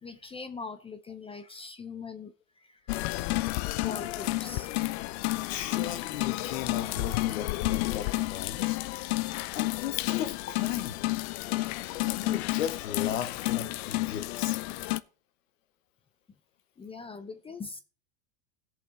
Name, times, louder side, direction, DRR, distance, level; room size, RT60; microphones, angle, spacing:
voice 1, 0.0-2.8 3.8-4.7 16.8-17.8, left 4 dB, 15° left, 0.6 m, -42 dB
sound 1, 2.9-15.0, left 20 dB, 55° left, 0.6 m, -31 dB
voice 2, 5.5-8.8 9.5-11.0 12.1-14.6, left 9 dB, 80° left, 1.3 m, -36 dB
16.5 x 5.6 x 4.0 m
hypercardioid pair, 105°, 38 cm